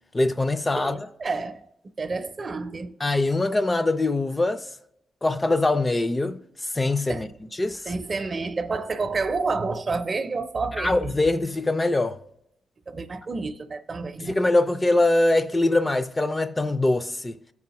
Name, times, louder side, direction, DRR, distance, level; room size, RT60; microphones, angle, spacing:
voice 1, 0.1-1.0 3.0-4.7 5.2-7.9 10.8-12.2 14.2-17.4, left 2 dB, 20° left, 0.4 m, -23 dB
voice 2, 0.8-1.6 2.0-2.9 7.1-7.2 7.9-11.0 12.9-14.4, right 4 dB, 40° right, 0.5 m, -29 dB
13.5 x 4.7 x 2.9 m
cardioid pair, 95°, 0 cm